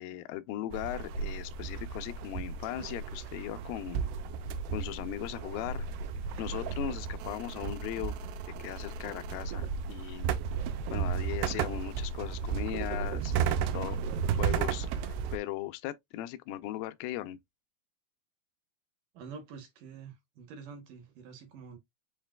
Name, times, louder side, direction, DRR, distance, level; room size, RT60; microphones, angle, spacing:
voice 1, 0.0-4.0 4.7-5.9 6.4-8.2 8.6-10.3 10.9-14.0 14.4-17.4, left 14 dB, 80° left, 2.1 m, -38 dB
sound 1, 0.7-15.4, right 7 dB, 85° right, 2.7 m, -34 dB
voice 2, 19.1-21.8, right 5 dB, 70° right, 2.2 m, -47 dB
7.3 x 3.2 x 2.2 m
omnidirectional pair, 4.6 m